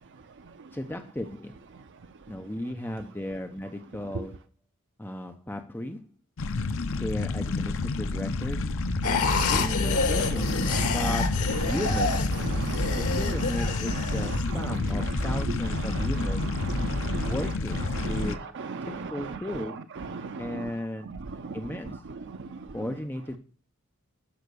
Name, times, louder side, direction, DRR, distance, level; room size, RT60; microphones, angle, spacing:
voice 1, 0.7-1.6 2.3-4.5 5.0-6.0 6.9-8.7 9.4-10.5 10.9-12.4 13.0-16.6 17.2-18.5 18.8-19.8 20.4-21.1 21.5-22.0 22.7-23.4, left 1 dB, 10° left, 6 dB, 0.7 m, -35 dB
sound 1, 6.4-18.4, left 3 dB, 65° left, 0.7 m, -30 dB
sound 2, 8.5-17.4, equal, 25° left, 4.7 m, -33 dB
sound 3, 9.0-14.4, left 4 dB, 85° left, 1.9 m, -29 dB
voice 2, 10.2-11.1 11.5-11.8 12.3-13.2 13.9-17.4 17.9-19.6 20.0-20.7 21.3-21.6, right 4 dB, 55° right, 9 dB, 0.6 m, -37 dB
13.0 x 5.9 x 6.8 m, 0.41 s
head